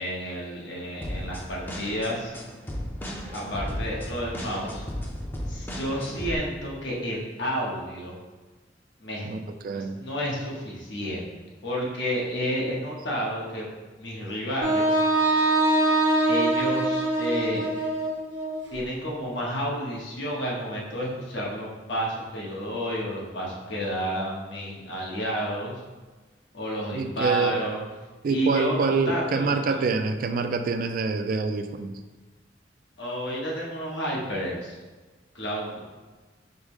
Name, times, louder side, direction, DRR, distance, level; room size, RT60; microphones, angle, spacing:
voice 1, 0.0-2.3 3.3-4.8 5.5-8.1 9.0-9.3 9.7-11.3 11.6-13.6 14.0-15.1 16.3-18.0 18.7-25.8 26.5-27.8 28.3-29.8 33.0-34.7 35.3-35.8, equal, 85° left, -4 dB, 1.1 m, -31 dB
sound 1, 1.0-6.4, equal, 10° left, 0.5 m, -35 dB
voice 2, 9.6-10.0 26.9-27.6 28.2-32.0, right 4 dB, 50° right, 7 dB, 0.3 m, -26 dB
Wind instrument woodwind instrument, 14.6-18.6, right 2 dB, 85° right, 1.0 m, -23 dB
5.0 x 2.1 x 4.7 m, 1.3 s
head